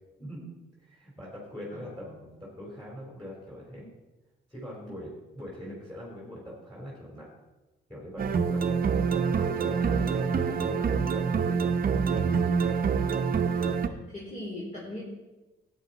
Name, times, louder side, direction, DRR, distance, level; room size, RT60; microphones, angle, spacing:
voice 1, 0.8-3.9 4.5-7.3 7.9-8.6 8.9-11.7, equal, 5° left, -5 dB, 3.6 m, -42 dB
sound 1, 8.2-13.9, right 6 dB, 45° right, 0.8 m, -26 dB
voice 2, 13.4-15.0, left 1 dB, 35° left, -5 dB, 3.3 m, -40 dB
12.5 x 8.8 x 4.1 m, 1.1 s
cardioid pair, 90°, 20 cm